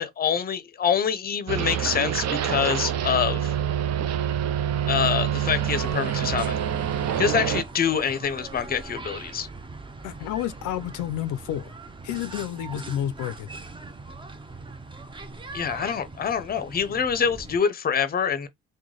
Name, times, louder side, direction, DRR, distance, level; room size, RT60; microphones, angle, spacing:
voice 1, 0.0-3.6 4.9-6.6 7.2-9.5 15.5-18.5, left 7 dB, 30° left, 0.6 m, -25 dB
sound 1, 1.5-7.6, right 9 dB, 60° right, 0.5 m, -26 dB
sound 2, 5.3-17.6, right 3 dB, 15° right, 0.6 m, -41 dB
voice 2, 10.0-11.7 12.0-13.5, left 11 dB, 85° left, 0.5 m, -30 dB
3.1 x 2.2 x 3.8 m
cardioid pair, 90°, 30 cm